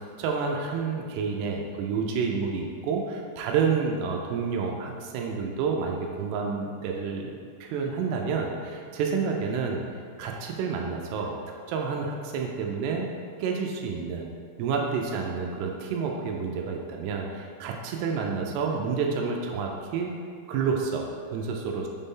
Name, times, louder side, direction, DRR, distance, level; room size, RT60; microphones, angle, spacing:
voice 1, 0.2-7.4 7.6-9.8 10.2-11.4 11.7-13.1 13.4-14.3 14.6-20.1 20.5-21.9, right 5 dB, 85° right, 1 dB, 2.4 m, -29 dB
7.2 x 4.0 x 3.7 m, 2.2 s
omnidirectional pair, 5.4 m